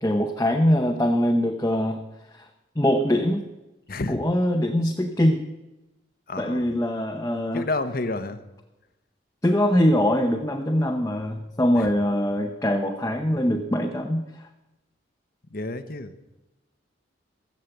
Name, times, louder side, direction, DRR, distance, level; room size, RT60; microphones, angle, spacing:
voice 1, 0.0-2.0 2.3-2.5 2.8-3.4 4.1-5.4 6.4-7.7 9.4-14.5, equal, 15° left, 2 dB, 0.8 m, -23 dB
voice 2, 3.9-4.2 6.3-6.7 7.5-8.4 11.7-11.9 15.5-16.1, left 2 dB, 50° left, 11 dB, 1.0 m, -29 dB
16.5 x 7.5 x 7.9 m, 1.0 s
head